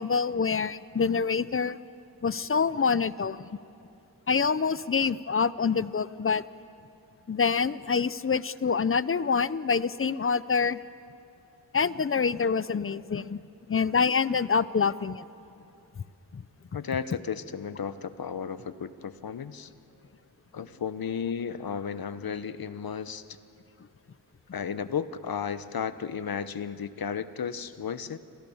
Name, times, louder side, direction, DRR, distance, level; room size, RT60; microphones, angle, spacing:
voice 1, 0.0-1.8 2.2-3.4 4.3-6.4 7.3-10.8 11.7-13.4 13.7-15.2 16.3-16.4, left 5 dB, 35° left, 17 dB, 0.5 m, -26 dB
voice 2, 16.7-19.7 20.5-23.4 24.5-28.2, left 7 dB, 60° left, 13 dB, 1.0 m, -34 dB
29.0 x 23.5 x 7.1 m, 2.7 s
wide cardioid pair, 120°, 40 cm